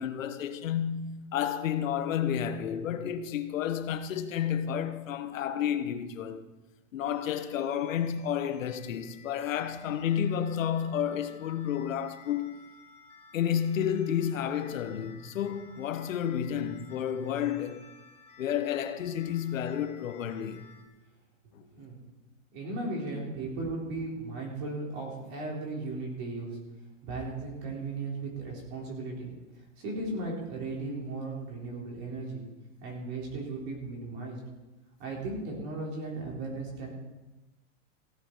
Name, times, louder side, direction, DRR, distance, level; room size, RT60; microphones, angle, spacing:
voice 1, 0.0-6.5 6.9-12.5 13.3-17.9 18.4-20.7 21.5-21.6, left 9 dB, 80° left, 1.2 m, -31 dB
sound 1, 7.1-20.8, left 4 dB, 15° left, 1.4 m, -55 dB
voice 2, 22.5-26.6 27.0-29.3 29.8-32.4 32.8-34.4 35.0-36.9, right 2 dB, 35° right, 4.1 m, -36 dB
16.0 x 10.5 x 4.7 m
supercardioid pair, 170°, 39 cm